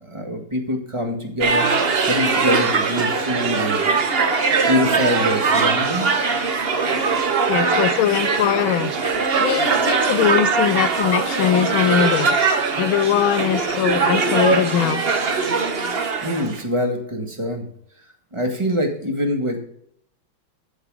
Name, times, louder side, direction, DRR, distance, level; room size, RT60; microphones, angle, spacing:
voice 1, 0.0-1.7 2.1-4.0 4.4-6.3 16.2-17.7 18.3-19.6, left 1 dB, 15° right, 3 dB, 1.6 m, -24 dB
sound 1, 1.4-16.6, right 4 dB, 40° right, 0.8 m, -21 dB
voice 2, 7.5-8.9 9.4-15.0, left 10 dB, 75° left, 12 dB, 1.5 m, -21 dB
14.0 x 4.9 x 6.1 m, 0.67 s
omnidirectional pair, 2.3 m